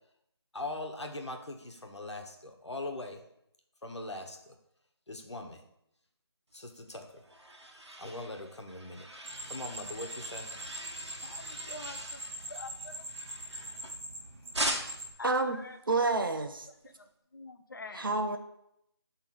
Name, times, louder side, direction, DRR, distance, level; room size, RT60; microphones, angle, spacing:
voice 1, 0.5-3.2 3.8-4.6 5.1-5.6 6.5-7.2 8.0-9.1 9.4-10.5, left 2 dB, 85° left, 3 dB, 1.2 m, -41 dB
sound 1, 6.8-14.1 14.5-15.2, right 1 dB, 90° right, 1.3 m, -41 dB
sound 2, 9.2-15.1, right 1 dB, 30° right, 1.2 m, -43 dB
voice 2, 11.2-12.2 12.5-13.1 15.2-16.2 16.7-18.1, left 3 dB, 50° left, 8 dB, 0.6 m, -46 dB
voice 3, 15.2-15.6 15.9-16.6 18.0-18.4, right 3 dB, 50° right, 6 dB, 0.7 m, -28 dB
6.9 x 3.4 x 4.6 m, 0.78 s
figure-of-eight pair, 170°, 14 cm